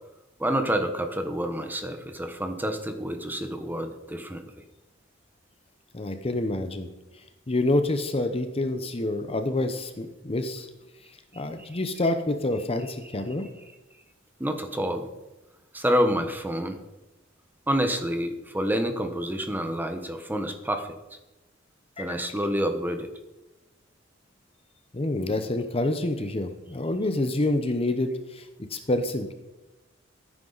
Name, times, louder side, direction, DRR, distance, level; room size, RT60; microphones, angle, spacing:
voice 1, 0.4-4.4 11.6-11.8 14.4-15.1 15.7-16.8 17.7-20.9 22.0-23.1, equal, 10° right, 7 dB, 1.0 m, -28 dB
voice 2, 5.9-6.9 7.5-10.7 11.3-13.5 22.0-22.2 24.9-29.3, left 2 dB, 30° left, 8 dB, 0.8 m, -27 dB
15.5 x 9.7 x 4.0 m, 1.0 s
head